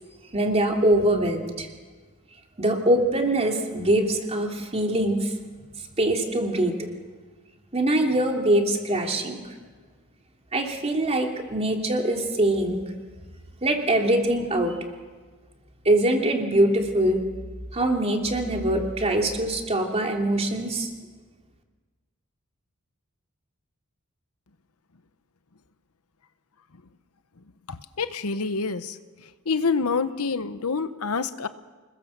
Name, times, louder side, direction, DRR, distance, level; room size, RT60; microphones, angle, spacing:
voice 1, 0.3-1.7 2.6-5.3 6.0-6.7 7.7-9.4 10.5-12.8 13.6-14.7 15.8-17.2 17.7-20.9, right 1 dB, 30° right, 2 dB, 3.1 m, -23 dB
voice 2, 27.7-29.0 29.5-31.5, left 4 dB, 75° left, 12 dB, 1.0 m, -27 dB
27.0 x 21.0 x 7.3 m, 1.4 s
head